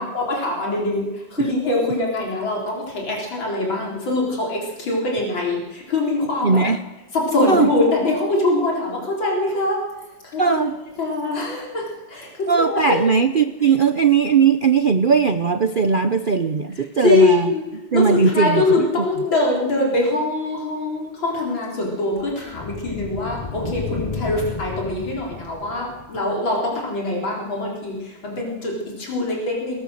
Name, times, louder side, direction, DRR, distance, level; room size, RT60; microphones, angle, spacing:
voice 1, 0.0-6.6 7.1-9.8 10.2-10.7 11.0-13.0 17.0-17.6 17.9-29.8, left 2 dB, 90° left, -2 dB, 4.9 m, -23 dB
voice 2, 6.4-6.8 7.5-7.7 10.4-10.7 12.5-17.5 17.9-18.9, right 5 dB, 90° right, 9 dB, 0.4 m, -18 dB
sound 1, 20.9-26.3, left 5 dB, 35° left, 0.6 m, -33 dB
21.5 x 21.5 x 6.5 m, 1.0 s
omnidirectional pair, 2.1 m